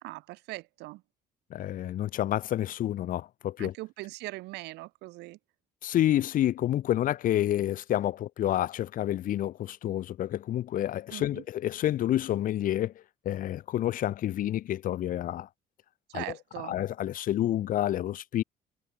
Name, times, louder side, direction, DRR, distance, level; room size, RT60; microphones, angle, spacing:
voice 1, 0.0-1.0 3.6-5.4 11.1-11.4 16.1-16.7, right 20 dB, 90° right, 1.1 m, -41 dB
voice 2, 1.5-3.7 5.8-12.9 13.3-15.5 16.1-16.2 16.7-18.4, left 12 dB, 55° left, 0.6 m, -29 dB
cardioid pair, 110°, 17 cm